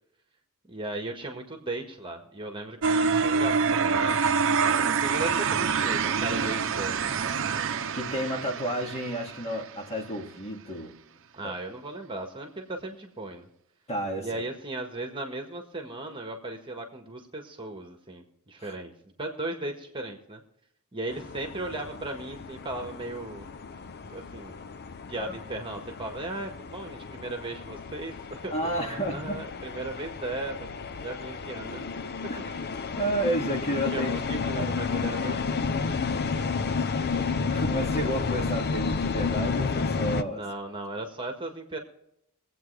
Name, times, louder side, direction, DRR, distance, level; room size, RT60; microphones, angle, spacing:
voice 1, 0.6-4.2 4.9-7.4 11.3-13.5 14.2-20.4 20.9-23.5 24.1-24.7 25.1-32.0 32.6-32.7 33.7-37.4 40.3-41.8, right 2 dB, 25° right, 3 dB, 1.6 m, -37 dB
sound 1, 2.8-9.8, right 5 dB, 60° right, 0.7 m, -26 dB
voice 2, 7.9-11.0 11.4-11.5 13.9-14.4 18.6-18.8 25.2-25.4 28.5-29.4 32.3-32.4 32.7-34.7 37.5-40.4, right 1 dB, 30° left, 1 dB, 2.2 m, -31 dB
sound 2, 21.1-40.2, left 5 dB, 50° left, 0.6 m, -32 dB
23.5 x 8.3 x 3.3 m, 0.77 s
head